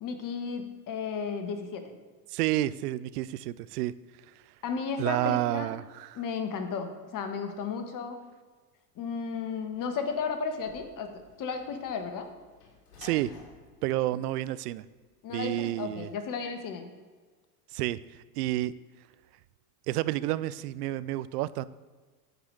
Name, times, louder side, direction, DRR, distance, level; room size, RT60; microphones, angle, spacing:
voice 1, 0.0-2.0 4.6-5.7 6.1-8.2 9.0-12.3 15.2-16.9, left 5 dB, 40° left, 7 dB, 1.4 m, -34 dB
voice 2, 2.3-3.9 5.0-6.2 13.0-13.3 13.8-14.9 15.3-16.1 17.7-18.7 19.9-21.6, right 15 dB, 75° right, 17 dB, 0.5 m, -30 dB
Sliding door / Slam, 9.2-15.1, left 4 dB, 85° left, 1.8 m, -55 dB
8.9 x 4.9 x 6.4 m, 1.4 s
hypercardioid pair, 90°, 47 cm